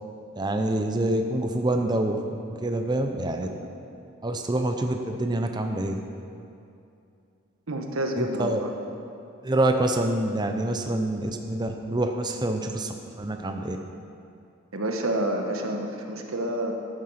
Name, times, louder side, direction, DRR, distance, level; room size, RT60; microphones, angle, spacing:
voice 1, 0.4-2.2 2.5-3.5 4.2-6.0 8.2-8.6 9.4-13.8, right 1 dB, 20° right, 4 dB, 0.6 m, -26 dB
voice 2, 7.7-8.7 14.7-16.7, right 1 dB, 80° right, 3 dB, 1.4 m, -28 dB
13.5 x 9.7 x 5.8 m, 2.6 s
head